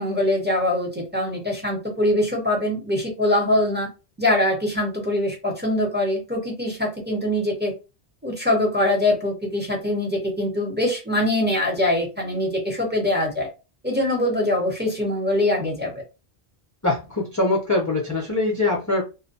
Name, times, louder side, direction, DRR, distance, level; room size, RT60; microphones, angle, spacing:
voice 1, 0.0-3.9 4.2-7.7 8.2-13.5 13.8-16.0, left 1 dB, 10° right, 0 dB, 0.7 m, -23 dB
voice 2, 16.8-19.0, left 2 dB, 25° left, -2 dB, 0.4 m, -23 dB
2.5 x 2.1 x 2.6 m, 0.28 s
omnidirectional pair, 1.1 m